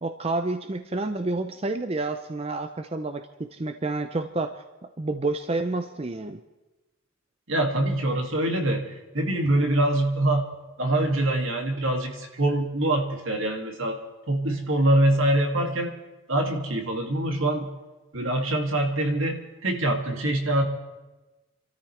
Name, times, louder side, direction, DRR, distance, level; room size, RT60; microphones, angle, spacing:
voice 1, 0.0-4.6 5.0-6.4, right 2 dB, 30° right, 8 dB, 0.5 m, -29 dB
voice 2, 7.5-10.5 10.8-14.0 14.3-15.9 16.3-17.7 18.1-20.6, right 1 dB, 70° right, 2 dB, 2.3 m, -24 dB
29.5 x 13.5 x 3.3 m, 1.1 s
head